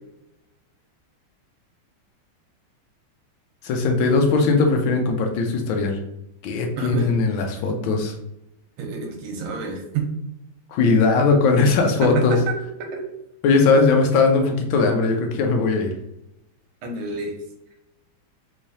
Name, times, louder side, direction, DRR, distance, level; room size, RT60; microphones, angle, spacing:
voice 1, 3.6-6.0 6.4-8.1 10.7-12.4 13.4-15.9, left 4 dB, 75° left, 3 dB, 1.3 m, -19 dB
voice 2, 6.8-7.1 8.8-10.1 12.0-12.5 12.8-13.0 13.7-13.9 16.8-17.4, right 5 dB, 85° right, 3 dB, 1.6 m, -28 dB
3.6 x 3.2 x 2.6 m, 0.84 s
omnidirectional pair, 2.3 m